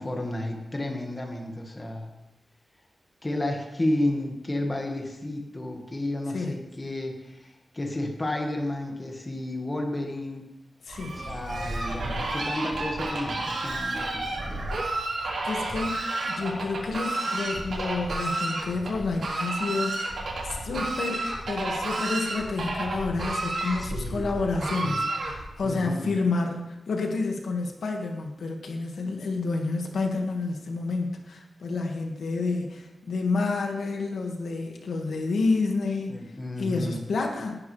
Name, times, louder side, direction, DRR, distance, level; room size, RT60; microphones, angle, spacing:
voice 1, 0.0-2.1 3.2-10.4 11.2-14.6 23.6-24.3 24.5-25.0 25.6-26.1 36.1-37.0, left 1 dB, 20° left, 2 dB, 1.8 m, -32 dB
voice 2, 10.8-11.2 15.4-20.1 20.4-36.2 36.6-37.6, left 3 dB, 85° left, 2 dB, 1.9 m, -29 dB
Fowl, 10.9-25.6, right 2 dB, 70° right, 4.3 m, -31 dB
18.5 x 10.5 x 3.4 m, 0.97 s
wide cardioid pair, 135°, 0 cm